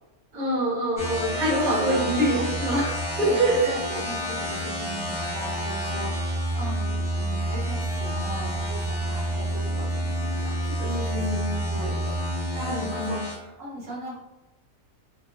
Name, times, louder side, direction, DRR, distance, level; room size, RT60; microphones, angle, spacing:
voice 1, 0.3-3.7 10.8-11.8 12.6-13.2, right 1 dB, 40° right, -6 dB, 0.8 m, -25 dB
sound 1, 1.0-13.3, equal, 5° right, 0.6 m, -29 dB
voice 2, 1.4-2.5 3.2-11.4 11.7-12.1 12.5-14.2, right 1 dB, 65° right, -6 dB, 1.1 m, -37 dB
2.8 x 2.0 x 2.3 m, 1.0 s
omnidirectional pair, 1.5 m